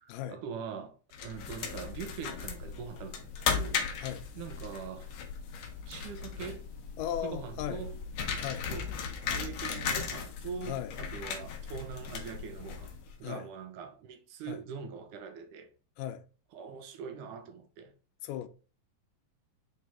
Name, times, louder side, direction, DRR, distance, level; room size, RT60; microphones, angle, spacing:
voice 1, 0.0-3.8 4.4-5.1 5.9-6.7 7.2-8.0 8.7-9.0 9.2-15.7 16.5-17.9, right 7 dB, 75° right, 2.4 m, -43 dB
sound 1, 1.1-13.2, left 6 dB, 65° left, 1.9 m, -37 dB
voice 2, 7.0-7.8 8.4-8.7 10.6-10.9 13.2-13.5 14.5-14.6 16.0-16.2 18.2-18.5, left 10 dB, 90° left, 2.2 m, -37 dB
7.8 x 4.0 x 3.5 m
omnidirectional pair, 3.7 m